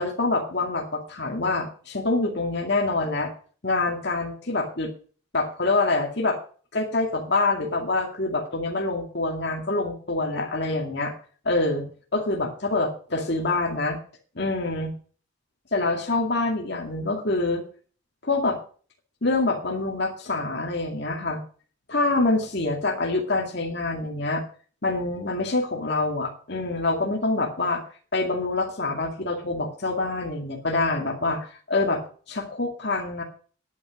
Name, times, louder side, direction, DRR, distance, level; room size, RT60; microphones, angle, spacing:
voice 1, 0.0-3.3 3.6-4.9 5.3-6.4 6.7-11.1 11.4-14.0 14.4-14.9 15.7-17.6 18.2-18.6 19.2-21.4 21.9-24.4 24.8-27.8 28.1-32.0 32.3-33.2, left 2 dB, 55° left, 1 dB, 2.2 m, -26 dB
10.5 x 8.9 x 6.4 m, 0.43 s
head